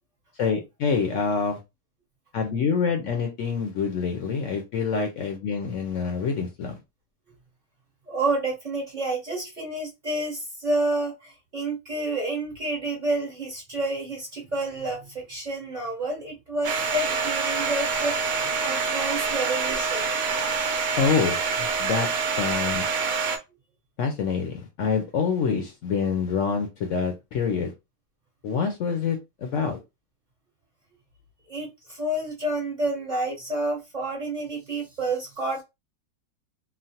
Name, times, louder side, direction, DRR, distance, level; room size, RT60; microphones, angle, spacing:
voice 1, 0.4-1.6 2.3-6.8 20.3-20.6 20.9-22.1 22.4-23.0 24.0-27.7 28.4-29.8, left 5 dB, 65° left, 0.8 m, -26 dB
voice 2, 8.1-20.1 31.5-35.6, right 2 dB, 35° right, 0.9 m, -29 dB
Domestic sounds home sounds, 16.6-23.4, right 5 dB, 70° right, 1.0 m, -26 dB
3.1 x 2.1 x 2.7 m
omnidirectional pair, 1.6 m